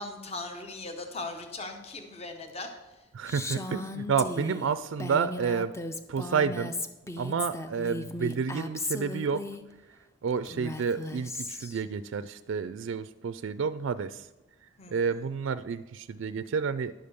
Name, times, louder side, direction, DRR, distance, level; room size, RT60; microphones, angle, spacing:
voice 1, 0.0-3.1 14.8-15.0, left 2 dB, 30° left, 5 dB, 0.9 m, -39 dB
voice 2, 3.2-5.7 6.1-6.8 7.2-9.4 10.2-14.3 14.9-16.9, right 6 dB, 70° right, 12 dB, 0.3 m, -30 dB
Female speech woman speaking, 3.3-9.6 10.5-11.8, left 2 dB, 15° left, 0.5 m, -36 dB
11.0 x 5.1 x 6.9 m, 1.0 s
head